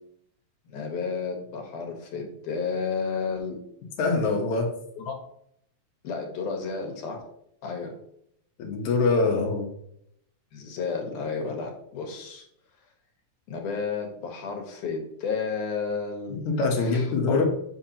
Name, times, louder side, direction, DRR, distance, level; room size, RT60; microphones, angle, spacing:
voice 1, 0.7-3.6 5.0-5.2 6.0-7.2 7.6-7.9 10.5-12.4 13.5-16.4 16.8-17.5, left 5 dB, 90° left, 2 dB, 2.7 m, -32 dB
voice 2, 4.0-4.7 8.6-9.7 16.5-17.5, left 3 dB, 75° left, 2 dB, 2.4 m, -24 dB
7.7 x 5.1 x 2.9 m, 0.72 s
omnidirectional pair, 3.4 m